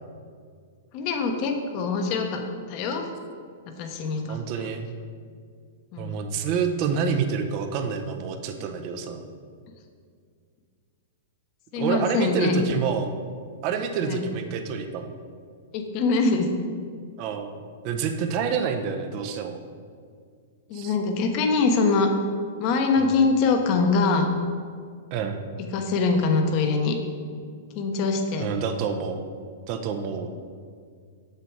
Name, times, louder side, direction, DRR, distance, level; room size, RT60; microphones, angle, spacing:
voice 1, 0.9-2.4 2.7-3.1 3.8-4.4 5.9-6.2 11.7-12.6 14.0-14.3 15.7-16.5 20.7-22.1 22.6-24.3 25.7-27.0 27.7-28.5, left 4 dB, 45° left, 4 dB, 1.0 m, -23 dB
voice 2, 4.3-4.9 6.0-9.2 11.8-13.1 13.6-15.1 17.2-17.6 17.8-19.6 20.7-20.9 23.0-23.2 25.1-25.4 28.4-29.2 29.7-30.3, right 6 dB, 45° right, 6 dB, 0.8 m, -28 dB
6.9 x 6.7 x 4.7 m, 2.1 s
hypercardioid pair, 130°, 0 cm